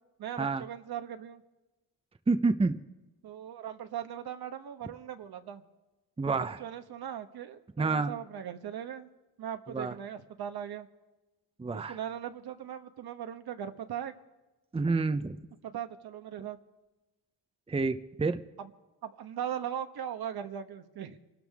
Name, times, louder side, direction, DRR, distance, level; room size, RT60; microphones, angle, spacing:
voice 1, 0.2-1.4 3.2-5.6 6.3-9.1 9.4-10.9 11.7-14.1 15.6-16.6 18.6-18.7 19.0-21.2, right 9 dB, 60° right, 8 dB, 1.3 m, -39 dB
voice 2, 2.3-2.8 6.2-6.6 7.8-8.1 9.7-9.9 11.6-12.0 14.7-15.4 17.7-18.4, right 3 dB, 15° right, 9 dB, 0.8 m, -28 dB
25.0 x 12.5 x 3.6 m, 1.1 s
cardioid pair, 75°, 42 cm